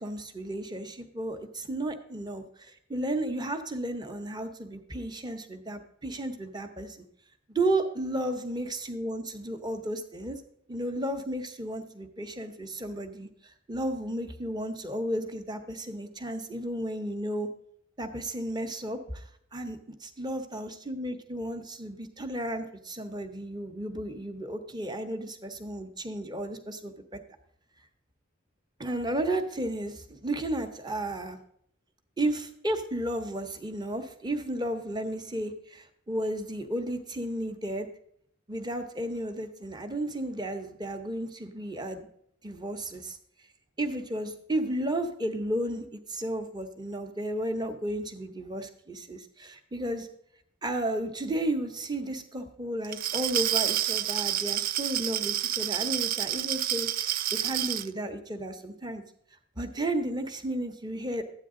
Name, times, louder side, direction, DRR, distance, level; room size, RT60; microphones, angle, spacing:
voice 1, 0.0-7.0 7.5-10.4 10.7-17.5 18.0-19.2 19.5-19.8 20.2-27.2 28.8-31.4 32.2-37.9 38.5-42.1 42.4-43.2 43.8-50.1 50.6-59.0 59.6-61.2, right 1 dB, 20° right, 7 dB, 1.0 m, -33 dB
Glass, 52.8-57.9, right 12 dB, 45° right, 0.3 m, -29 dB
12.5 x 9.1 x 3.8 m, 0.68 s
head